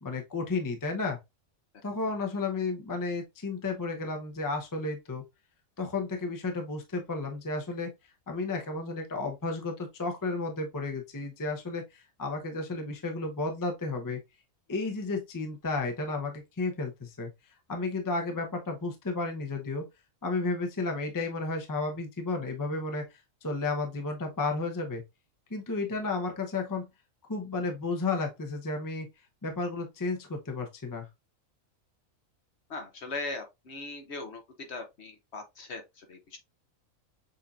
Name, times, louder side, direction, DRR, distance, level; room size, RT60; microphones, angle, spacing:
voice 1, 0.0-1.2 1.8-5.2 5.8-7.9 8.3-14.2 14.7-17.3 17.7-19.8 20.2-23.0 23.4-25.0 25.5-26.9 27.3-29.1 29.4-31.1, left 3 dB, 20° left, 0.6 m, -32 dB
voice 2, 32.7-34.4 34.7-36.4, left 3 dB, 55° left, 1.0 m, -39 dB
6.6 x 2.7 x 2.4 m
omnidirectional pair, 1.4 m